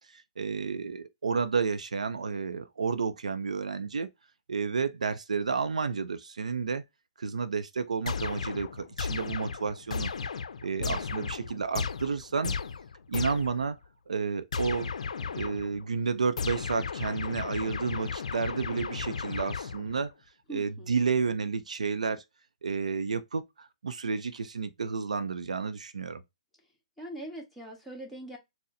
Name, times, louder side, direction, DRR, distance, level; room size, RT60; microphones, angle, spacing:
voice 1, 0.1-4.1 4.5-6.8 7.2-10.1 10.6-12.5 13.1-13.8 14.1-14.9 15.4-20.1 20.5-22.2 22.6-26.2, right 5 dB, 85° right, 0.5 m, -31 dB
sound 1, 8.1-13.7 14.5-15.8 16.4-20.1, left 5 dB, 80° left, 0.5 m, -35 dB
voice 2, 10.8-11.2 20.5-20.9 27.0-28.4, right 1 dB, ahead, 1.4 m, -42 dB
4.2 x 2.1 x 3.7 m
hypercardioid pair, 135°, 4 cm